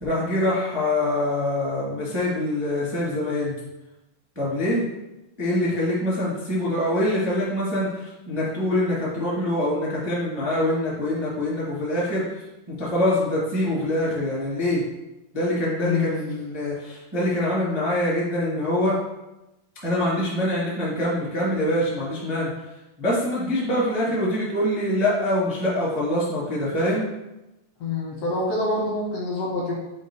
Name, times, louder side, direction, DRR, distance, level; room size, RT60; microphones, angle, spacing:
voice 1, 0.0-3.6 4.3-4.8 5.4-12.2 12.8-14.8 15.3-18.9 19.8-22.5 23.0-27.0, left 1 dB, 20° right, -7 dB, 0.7 m, -24 dB
voice 2, 15.8-16.2 27.8-29.7, left 2 dB, 75° left, -3 dB, 1.5 m, -26 dB
6.4 x 3.1 x 4.7 m, 0.95 s
omnidirectional pair, 4.1 m